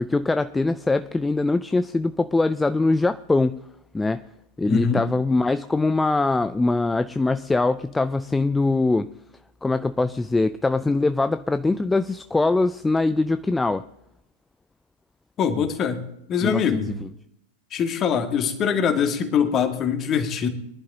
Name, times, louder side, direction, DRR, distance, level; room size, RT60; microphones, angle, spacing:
voice 1, 0.0-3.6 3.9-4.2 4.6-9.1 9.6-13.8 16.4-16.9, left 3 dB, 10° left, 0.3 m, -22 dB
voice 2, 4.7-5.0 15.4-16.0 16.3-16.9 17.7-20.5, left 7 dB, 30° left, 1.8 m, -23 dB
23.0 x 11.0 x 2.7 m
figure-of-eight pair, 90°, 0 cm